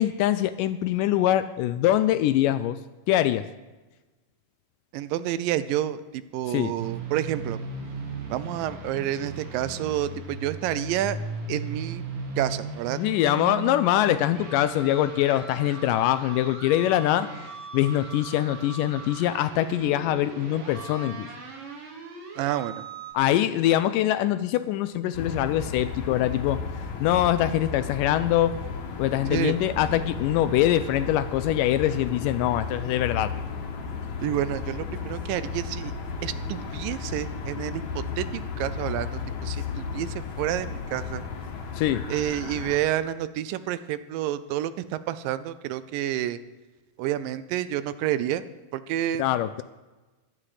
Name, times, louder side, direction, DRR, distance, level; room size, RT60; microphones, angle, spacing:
voice 1, 0.0-2.8 3.1-3.5 6.5-6.7 13.0-17.3 17.7-21.3 23.1-26.6 27.0-28.6 29.0-33.3 41.7-42.0 49.2-49.6, left 12 dB, 80° left, 13 dB, 2.0 m, -23 dB
voice 2, 4.9-7.6 8.3-11.2 11.5-12.0 12.4-13.0 22.4-22.8 29.3-29.6 34.2-35.9 36.2-41.2 42.1-46.4 47.0-48.4 48.7-49.2, right 12 dB, 80° right, 14 dB, 2.2 m, -29 dB
sound 1, 6.8-23.1, right 3 dB, 45° right, 1.9 m, -38 dB
sound 2, 25.1-42.8, left 5 dB, 60° left, 2.5 m, -34 dB
14.5 x 11.5 x 4.9 m, 1.2 s
omnidirectional pair, 4.0 m